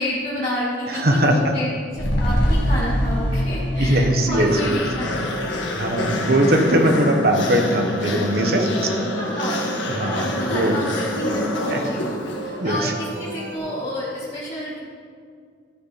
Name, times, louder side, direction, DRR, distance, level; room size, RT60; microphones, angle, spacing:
voice 1, 0.0-5.1 5.4-5.6 6.2-6.5 9.2-9.6 9.9-12.0 12.4-14.8, left 1 dB, 30° left, -10 dB, 2.2 m, -30 dB
voice 2, 0.9-1.5 3.8-4.8 5.7-9.0 9.9-10.7 11.7-11.8 12.6-12.9, right 1 dB, 55° right, 3 dB, 1.2 m, -20 dB
sound 1, 1.9-6.5 6.8-6.9, equal, 60° left, 1.8 m, -24 dB
sound 2, 2.6-13.6, right 1 dB, 85° right, 2.5 m, -38 dB
sound 3, 4.3-12.8, left 1 dB, 80° left, 1.6 m, -27 dB
14.0 x 6.6 x 5.8 m, 2.1 s
head